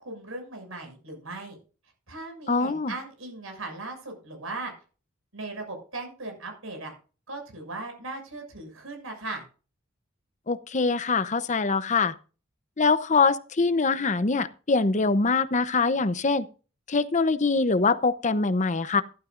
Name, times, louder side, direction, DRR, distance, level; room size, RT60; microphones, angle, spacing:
voice 1, 0.0-1.6 2.1-4.7 5.3-6.9 7.3-9.4, right 2 dB, 90° right, 6.5 m, -38 dB
voice 2, 2.5-2.9 10.5-12.1 12.8-16.5 16.9-19.0, left 4 dB, 35° left, 0.8 m, -23 dB
15.0 x 12.5 x 2.6 m
head